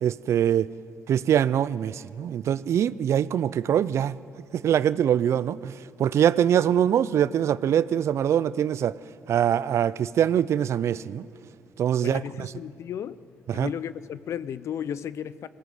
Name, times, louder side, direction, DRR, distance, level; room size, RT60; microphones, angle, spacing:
voice 1, 0.0-0.7 1.1-4.2 4.5-9.0 9.3-11.3 11.8-12.5 13.5-13.7, right 9 dB, 60° right, 0.5 m, -23 dB
voice 2, 12.0-13.2 13.5-15.5, left 9 dB, 60° left, 0.6 m, -34 dB
21.5 x 17.5 x 8.0 m
supercardioid pair, 60°, 5 cm